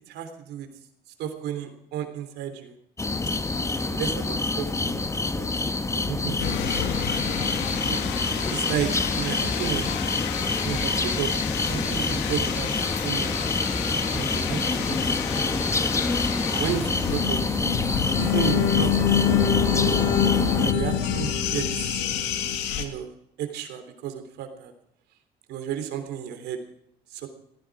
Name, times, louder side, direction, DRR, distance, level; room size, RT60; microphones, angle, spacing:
voice 1, 0.1-0.7 1.2-2.7 3.7-5.7 5.9-6.9 7.9-8.0 8.5-8.9 9.2-10.0 10.6-11.3 11.7-12.7 13.0-13.4 14.1-15.7 16.5-17.4 18.2-19.8 20.6-21.7 22.7-23.1 23.4-24.7 25.5-26.6 27.1-27.3, right 9 dB, 80° right, 7 dB, 3.4 m, -33 dB
sound 1, 3.0-20.7, left 3 dB, 15° left, 1.2 m, -27 dB
sound 2, 6.4-22.8, left 9 dB, 90° left, 2.1 m, -27 dB
17.0 x 15.5 x 4.9 m, 0.75 s
cardioid pair, 110°, 17 cm